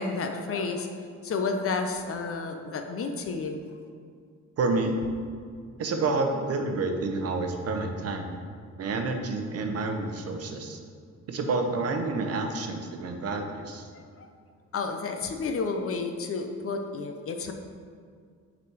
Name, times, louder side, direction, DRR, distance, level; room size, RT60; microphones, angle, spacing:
voice 1, 0.0-3.6 13.9-14.3 14.7-17.5, left 4 dB, 50° left, 5 dB, 0.6 m, -31 dB
voice 2, 4.6-5.0 5.8-8.4 8.8-10.8 11.3-13.9, right 3 dB, 55° right, 4 dB, 0.8 m, -29 dB
5.6 x 4.1 x 4.6 m, 2.1 s
cardioid pair, 90°, 30 cm